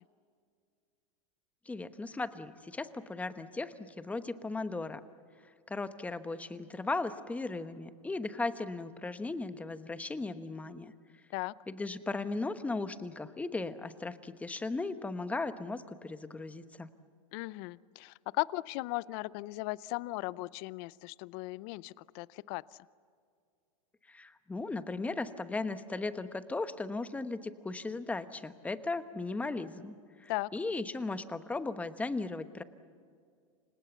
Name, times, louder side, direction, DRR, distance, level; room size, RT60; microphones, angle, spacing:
voice 1, 1.7-5.0 5.7-10.9 11.7-16.9 24.1-29.9 30.2-32.6, left 3 dB, 10° left, 11 dB, 1.1 m, -37 dB
voice 2, 17.3-22.6 30.3-30.5, left 21 dB, 45° left, 20 dB, 0.6 m, -37 dB
29.0 x 26.0 x 7.1 m, 2.2 s
supercardioid pair, 135°, 17 cm